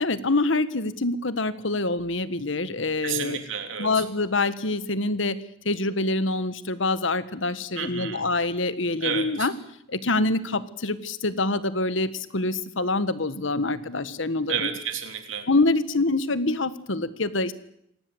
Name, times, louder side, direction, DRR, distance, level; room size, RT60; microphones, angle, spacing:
voice 1, 0.0-3.4 3.8-5.4 5.6-9.5 9.9-14.6 15.5-17.5, left 2 dB, 75° left, 14 dB, 1.5 m, -25 dB
voice 2, 3.0-4.0 7.7-8.3 9.0-9.5 14.5-15.5, right 7 dB, 80° right, 6 dB, 3.4 m, -31 dB
26.5 x 19.0 x 8.0 m, 0.75 s
head